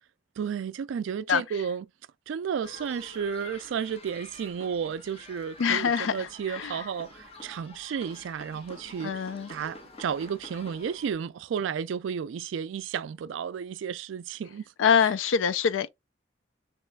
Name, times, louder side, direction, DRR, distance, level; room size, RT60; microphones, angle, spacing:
voice 1, 0.4-1.9 2.3-14.6 15.0-15.1, right 7 dB, 75° right, 0.3 m, -33 dB
sound 1, 2.6-11.1, left 2 dB, 30° left, 0.7 m, -48 dB
voice 2, 5.6-6.8 9.0-9.5 14.8-15.9, left 7 dB, 80° left, 0.4 m, -25 dB
3.2 x 3.1 x 3.3 m
head